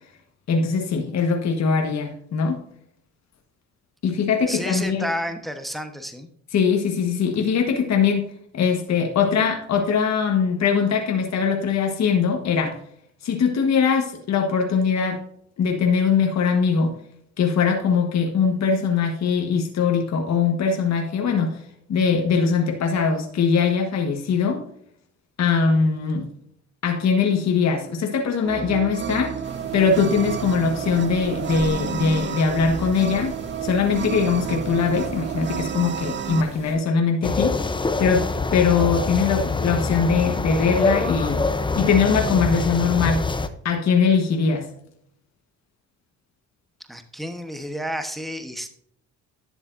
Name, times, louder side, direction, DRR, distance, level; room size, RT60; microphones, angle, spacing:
voice 1, 0.5-2.6 4.0-5.0 6.5-8.3 8.5-12.8 13.2-15.2 15.6-16.9 17.4-21.6 21.9-24.6 25.4-26.3 26.8-29.4 29.7-33.4 33.6-37.6 38.0-41.5 41.7-43.2 43.6-44.7, left 5 dB, 65° left, 3 dB, 1.5 m, -21 dB
voice 2, 4.5-6.3 46.9-48.8, equal, ahead, 7 dB, 1.1 m, -31 dB
sound 1, 28.4-36.4, right 9 dB, 40° right, 0.5 m, -30 dB
sound 2, 29.4-36.7, right 1 dB, 20° right, 3.3 m, -39 dB
sound 3, 37.2-43.5, left 3 dB, 15° left, 0.7 m, -25 dB
11.0 x 7.0 x 2.6 m, 0.66 s
cardioid pair, 90°, 30 cm